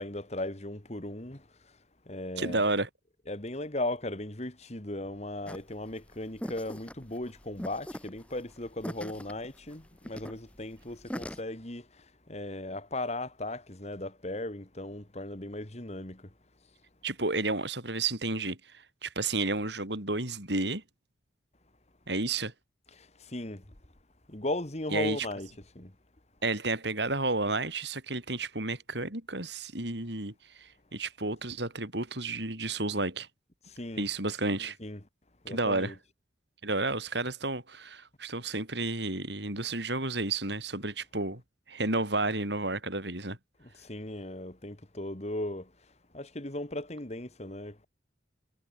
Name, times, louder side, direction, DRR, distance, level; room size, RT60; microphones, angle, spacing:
voice 1, 0.0-1.5 2.1-2.6 3.3-16.3 22.9-23.6 24.3-25.5 25.7-25.9 33.7-34.0 34.8-35.0 35.4-35.9 43.6-45.7 46.1-47.9, left 1 dB, 35° left, 2.2 m, -37 dB
voice 2, 2.4-2.9 17.0-20.8 22.1-22.5 24.9-25.3 26.4-33.3 34.0-34.8 35.5-35.9 36.6-41.4 41.7-43.4, right 2 dB, 65° right, 6.8 m, -31 dB
sound 1, 5.5-11.4, equal, 5° left, 2.3 m, -42 dB
head